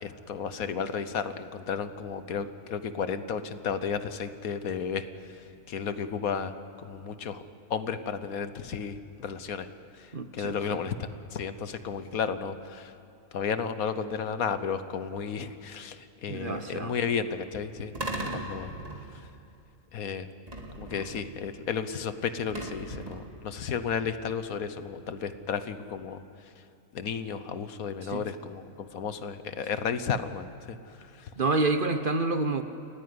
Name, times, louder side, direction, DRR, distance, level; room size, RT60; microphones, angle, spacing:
voice 1, 0.0-5.4 5.7-6.5 6.8-7.4 7.7-9.7 10.0-12.9 13.3-18.7 19.9-20.3 20.8-26.2 26.9-31.3, left 6 dB, 75° left, 11 dB, 1.5 m, -33 dB
voice 2, 10.1-10.8 16.3-17.0 18.2-18.5 28.0-28.2 31.4-32.6, right 3 dB, 40° right, 8 dB, 1.0 m, -29 dB
sound 1, 18.0-19.3 20.5-21.3 22.5-23.4, right 1 dB, 25° right, 2.4 m, -38 dB
29.0 x 14.5 x 9.6 m, 2.5 s
omnidirectional pair, 1.5 m